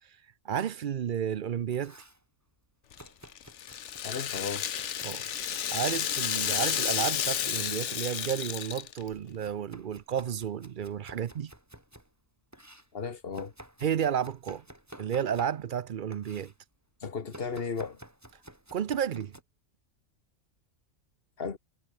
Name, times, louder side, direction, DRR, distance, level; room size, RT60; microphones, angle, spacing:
voice 1, 0.4-2.0 5.0-11.5 13.8-14.6 15.0-16.5 18.7-19.3, right 8 dB, 55° right, 0.6 m, -32 dB
Domestic sounds home sounds, 1.5-2.2 3.0-5.4 6.1-6.6 7.3-8.0 8.4-12.1 12.5-15.8 16.1-16.6 17.3-19.4, right 1 dB, 10° right, 2.9 m, -52 dB
Rattle (instrument), 2.9-9.1, left 9 dB, 65° left, 1.2 m, -31 dB
voice 2, 4.0-5.0 12.9-13.5 17.0-18.0 21.4-21.6, left 5 dB, 50° left, 1.6 m, -35 dB
omnidirectional pair, 1.3 m